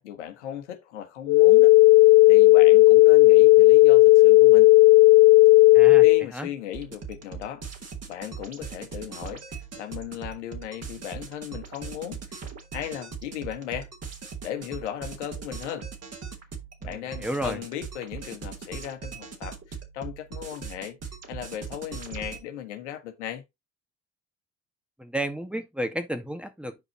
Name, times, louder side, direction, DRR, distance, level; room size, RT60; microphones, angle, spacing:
voice 1, 0.0-1.7 2.3-4.7 6.0-7.6 8.1-12.4 12.7-13.9 14.4-15.9 16.8-21.0 21.3-23.4, left 11 dB, 85° left, 1.4 m, -36 dB
sound 1, 1.3-6.2, left 20 dB, 50° left, 0.4 m, -14 dB
voice 2, 5.7-6.0 6.3-6.5 16.8-17.6 25.0-26.8, right 1 dB, 5° right, 2.0 m, -32 dB
sound 2, 6.7-22.4, right 6 dB, 45° right, 3.7 m, -40 dB
10.0 x 5.1 x 4.2 m
hypercardioid pair, 55°, 34 cm